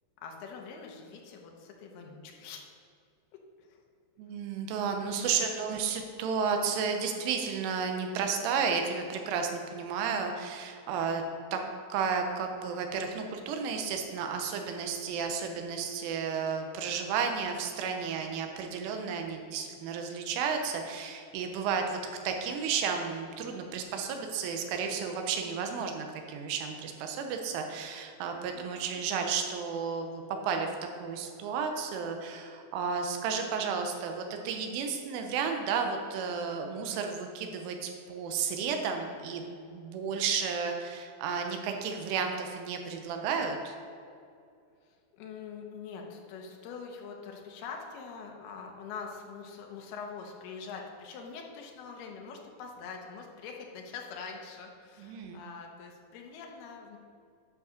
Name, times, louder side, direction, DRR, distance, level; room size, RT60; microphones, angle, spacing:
voice 1, 0.2-2.6 3.6-3.9 5.2-5.7 28.5-29.0 44.8-57.0, left 5 dB, 80° left, 1 dB, 2.3 m, -44 dB
voice 2, 4.2-11.2 11.5-11.6 11.9-22.0 22.2-30.7 31.0-43.7 55.0-55.4, right 6 dB, 90° right, 4 dB, 3.3 m, -32 dB
11.0 x 4.9 x 6.4 m, 2.4 s
omnidirectional pair, 5.7 m